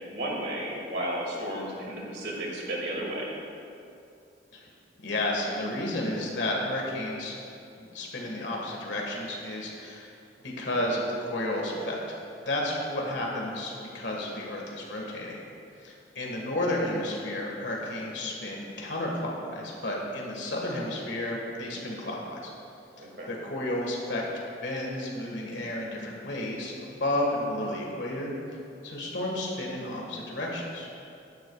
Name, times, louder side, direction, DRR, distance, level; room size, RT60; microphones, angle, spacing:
voice 1, 0.1-3.3 21.7-21.9 23.0-23.3, right 1 dB, 75° right, -3 dB, 2.3 m, -33 dB
voice 2, 5.0-7.4 7.8-10.1 10.4-15.4 15.8-22.5 23.0-24.2 24.6-28.3 28.8-30.9, left 1 dB, 85° left, -2 dB, 1.7 m, -32 dB
15.0 x 10.5 x 2.4 m, 2.6 s
head